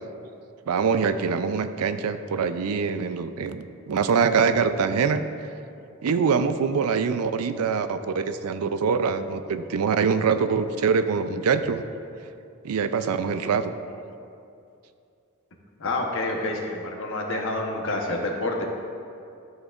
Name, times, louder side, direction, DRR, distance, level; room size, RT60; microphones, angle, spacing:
voice 1, 0.7-5.3 6.0-11.8 12.6-13.7, right 5 dB, 85° right, 10 dB, 0.4 m, -24 dB
voice 2, 15.8-18.7, left 2 dB, 60° left, 1 dB, 1.0 m, -28 dB
12.5 x 6.3 x 2.4 m, 2.6 s
head